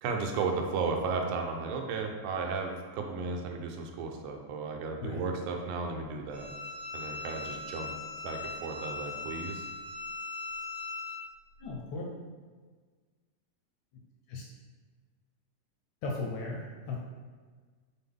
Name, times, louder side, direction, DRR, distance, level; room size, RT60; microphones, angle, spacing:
voice 1, 0.0-6.5 6.9-7.9 8.2-9.7, right 4 dB, 85° right, 3 dB, 2.0 m, -34 dB
Bowed string instrument, 6.3-11.2, left 3 dB, 70° right, 2.1 m, -39 dB
voice 2, 11.6-12.0 14.3-14.4 16.0-17.0, left 3 dB, 80° left, -2 dB, 1.7 m, -36 dB
5.7 x 2.1 x 3.4 m, 1.5 s
omnidirectional pair, 3.6 m